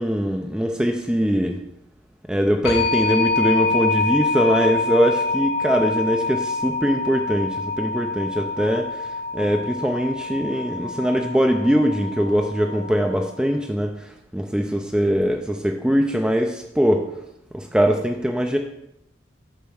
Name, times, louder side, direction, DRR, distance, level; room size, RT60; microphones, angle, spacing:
voice 1, 0.0-1.6 2.3-17.1 17.5-18.6, equal, 5° right, 3 dB, 0.4 m, -22 dB
sound 1, 2.6-13.3, left 3 dB, 55° left, 1.5 m, -26 dB
6.8 x 4.3 x 6.4 m, 0.80 s
head